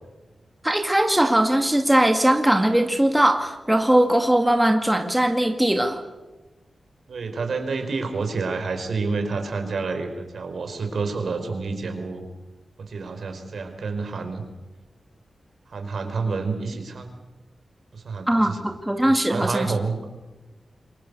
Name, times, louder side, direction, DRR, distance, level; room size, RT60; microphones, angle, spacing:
voice 1, 0.6-6.0 18.3-19.7, right 1 dB, 10° right, 5 dB, 2.1 m, -20 dB
voice 2, 7.1-12.2 12.8-14.4 15.7-17.1 17.9-18.6 19.3-20.1, right 4 dB, 75° right, 6 dB, 4.5 m, -29 dB
27.5 x 23.5 x 6.9 m, 1.1 s
wide cardioid pair, 95°, 0 cm